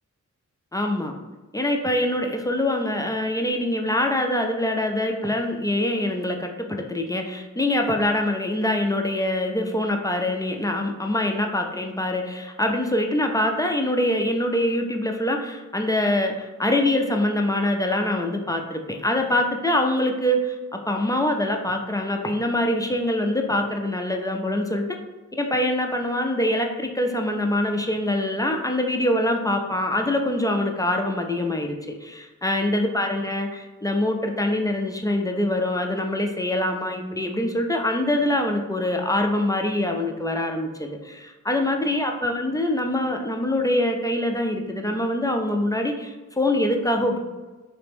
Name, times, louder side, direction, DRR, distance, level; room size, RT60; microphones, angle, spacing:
voice 1, 0.7-1.2 1.5-20.6 20.9-24.8 25.3-31.8 32.0-47.2, left 1 dB, 10° left, 3 dB, 0.4 m, -24 dB
3.3 x 3.0 x 3.4 m, 1.2 s
wide cardioid pair, 95°, 32 cm